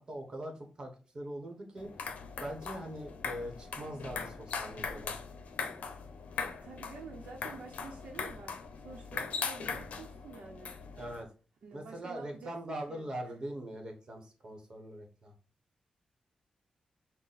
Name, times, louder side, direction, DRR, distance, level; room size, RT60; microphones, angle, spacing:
voice 1, 0.0-1.9 2.4-5.2 11.0-11.3 11.7-15.3, right 1 dB, 30° right, 4 dB, 1.1 m, -42 dB
sound 1, 1.8-11.2, left 5 dB, 80° left, 0.6 m, -40 dB
voice 2, 6.6-10.8 11.6-12.5 12.9-13.3, right 4 dB, 70° right, -1 dB, 0.8 m, -49 dB
5.9 x 2.2 x 4.1 m, 0.36 s
wide cardioid pair, 160°, 2 cm